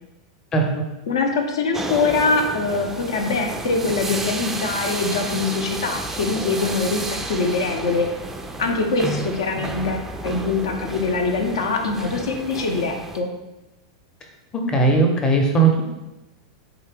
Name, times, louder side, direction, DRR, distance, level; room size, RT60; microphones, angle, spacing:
voice 1, 1.1-8.1 8.6-13.3, left 4 dB, 65° left, 4 dB, 0.6 m, -23 dB
sound 1, 1.7-13.2, right 2 dB, 10° right, 0.4 m, -31 dB
voice 2, 14.7-15.8, right 3 dB, 25° left, 2 dB, 0.7 m, -17 dB
3.9 x 2.9 x 3.5 m, 0.99 s
figure-of-eight pair, 90°, 3 cm